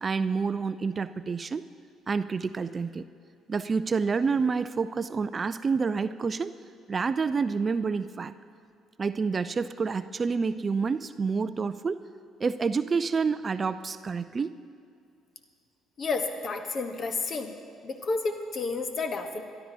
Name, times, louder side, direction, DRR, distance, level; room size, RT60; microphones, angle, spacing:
voice 1, 0.0-1.6 2.1-3.0 3.5-6.5 6.9-8.3 9.0-12.0 12.4-14.5, right 5 dB, 35° right, 14 dB, 0.4 m, -28 dB
voice 2, 16.0-17.5 17.8-19.4, left 4 dB, 45° left, 7 dB, 1.1 m, -31 dB
23.0 x 12.0 x 2.9 m, 2.4 s
figure-of-eight pair, 50°, 0 cm